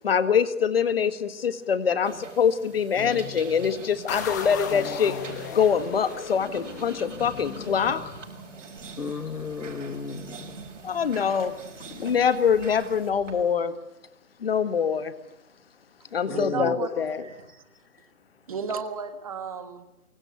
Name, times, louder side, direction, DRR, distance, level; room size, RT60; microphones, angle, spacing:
voice 1, 0.0-5.2 5.5-8.0 10.8-11.5 11.9-13.7 14.4-15.1 16.1-17.3, left 7 dB, 40° left, 12 dB, 1.7 m, -24 dB
sound 1, 2.0-13.4, right 4 dB, 50° right, 6.0 m, -44 dB
sound 2, 4.1-8.6, left 6 dB, 10° left, 1.2 m, -36 dB
voice 2, 9.0-10.6 16.3-16.8, left 5 dB, 75° left, 15 dB, 1.5 m, -34 dB
voice 3, 16.3-16.9 17.2-17.4 18.5-19.8, right 6 dB, 25° right, 10 dB, 1.4 m, -33 dB
24.0 x 23.5 x 8.4 m, 0.92 s
hypercardioid pair, 165°, 46 cm